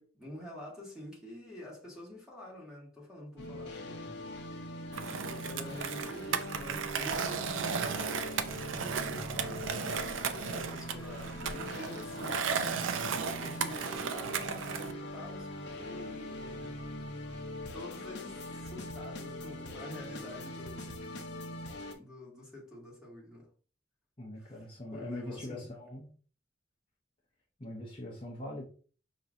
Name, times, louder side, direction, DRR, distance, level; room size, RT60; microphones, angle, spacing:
voice 1, 0.0-4.2 5.2-12.6 13.3-16.8 17.7-20.9 21.9-23.5 24.4-24.5 24.9-25.7, left 1 dB, 5° right, 1.8 m, -48 dB
sound 1, 3.4-21.9, left 1 dB, 65° left, 0.8 m, -42 dB
Skateboard, 4.9-14.9, right 6 dB, 75° right, 0.5 m, -35 dB
voice 2, 24.2-26.1 27.6-28.6, left 1 dB, 25° left, 0.9 m, -42 dB
5.5 x 3.1 x 2.5 m
head